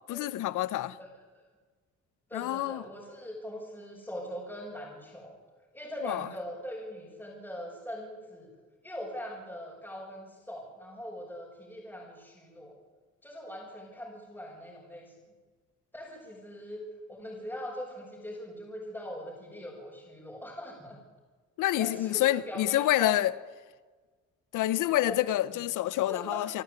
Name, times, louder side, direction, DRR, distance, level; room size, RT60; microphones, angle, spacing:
voice 1, 0.1-1.0 2.3-2.8 6.0-6.3 21.6-23.3 24.5-26.6, left 14 dB, 85° left, 1.0 m, -27 dB
voice 2, 2.3-5.4 5.7-8.5 8.8-12.7 13.2-15.1 15.9-16.8 17.1-21.0 21.8-23.2 25.0-25.2 25.5-25.6 26.1-26.4, equal, 5° left, 7.0 m, -41 dB
27.5 x 12.5 x 9.6 m
cardioid pair, 90°, 30 cm